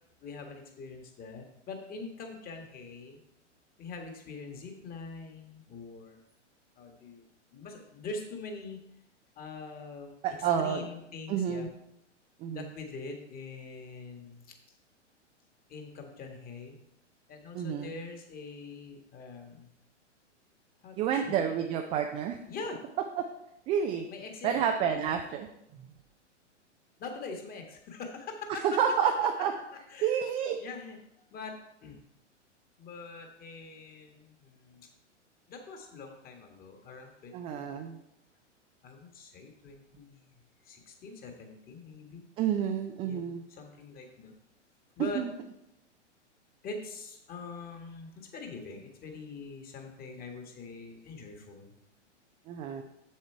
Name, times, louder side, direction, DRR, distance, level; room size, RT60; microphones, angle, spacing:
voice 1, 0.2-3.2 3.8-6.2 6.7-7.3 7.5-8.8 9.3-11.7 12.4-14.4 15.7-16.8 17.3-19.7 20.8-21.3 22.5-22.8 24.1-24.6 25.0-25.1 27.0-28.8 29.9-30.2 30.6-31.0 31.3-32.0 32.8-34.9 35.5-37.8 38.8-40.3 40.6-42.2 43.0-44.3 45.0-45.3 46.6-51.7, left 4 dB, 25° left, 4 dB, 1.6 m, -43 dB
voice 2, 10.2-10.9 11.3-11.7 12.4-12.6 17.5-17.9 21.0-22.4 23.2-23.3 23.7-24.1 24.4-25.5 25.7-25.9 28.6-29.5 30.0-30.6 37.3-38.0 42.4-43.4 45.0-45.3 52.5-52.8, right 8 dB, 15° right, 4 dB, 0.4 m, -29 dB
7.5 x 7.4 x 4.5 m, 0.82 s
figure-of-eight pair, 105°, 36 cm